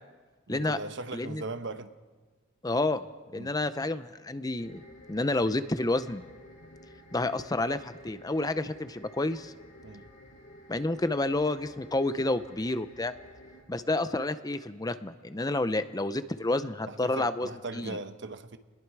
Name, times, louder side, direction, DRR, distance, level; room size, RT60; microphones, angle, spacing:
voice 1, 0.5-1.9 3.3-3.5 9.8-10.0 16.9-18.6, right 3 dB, 65° right, 10 dB, 1.0 m, -39 dB
voice 2, 2.6-3.0 3.3-4.8 5.1-6.3 7.1-9.5 10.7-13.1 13.7-18.0, left 2 dB, 20° left, 12 dB, 0.7 m, -29 dB
sound 1, 4.6-13.6, equal, 70° left, 7.0 m, -52 dB
29.0 x 21.0 x 4.8 m, 1.4 s
head